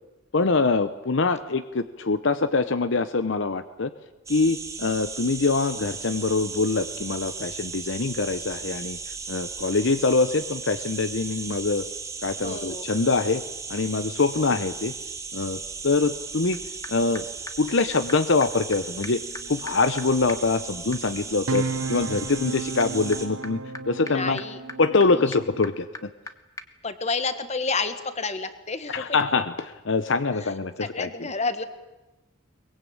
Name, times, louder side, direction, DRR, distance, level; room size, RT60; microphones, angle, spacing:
voice 1, 0.3-3.9 4.3-11.8 12.2-13.4 13.7-14.9 15.3-16.6 16.9-17.3 17.6-19.2 19.5-23.6 23.9-24.4 24.8-26.1 28.9-31.3, left 3 dB, 60° left, 12 dB, 0.8 m, -24 dB
sound 1, 4.3-23.3, right 4 dB, 15° right, 2.7 m, -36 dB
voice 2, 12.4-12.8 24.0-24.6 25.1-25.4 26.8-29.0 30.8-31.6, left 4 dB, 30° left, 11 dB, 1.5 m, -30 dB
sound 2, 16.5-16.6 16.8-16.9 17.1-17.2 17.5-17.6 17.8-17.9 18.1-18.2 18.4-18.5 18.7-18.8 19.0-26.3 26.6-26.7, left 2 dB, 15° left, 1.2 m, -43 dB
sound 3, 20.3-25.6, right 3 dB, 85° right, 1.0 m, -34 dB
23.0 x 21.0 x 8.7 m, 1.1 s
head